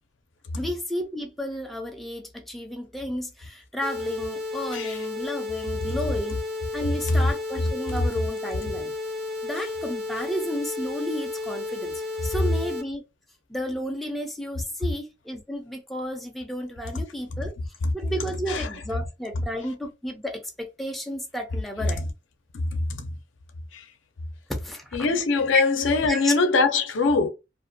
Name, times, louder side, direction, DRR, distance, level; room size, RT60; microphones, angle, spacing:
voice 1, 0.6-6.4 6.7-8.9 9.4-13.0 13.5-17.5 17.9-22.1 24.6-25.1 25.5-25.6 26.0-26.3, equal, ahead, 0.4 m, -32 dB
sound 1, 3.8-12.8, left 3 dB, 55° right, 0.6 m, -33 dB
voice 2, 22.5-23.1 23.7-23.8 24.9-27.3, left 4 dB, 80° left, 0.5 m, -23 dB
2.5 x 2.2 x 2.6 m
head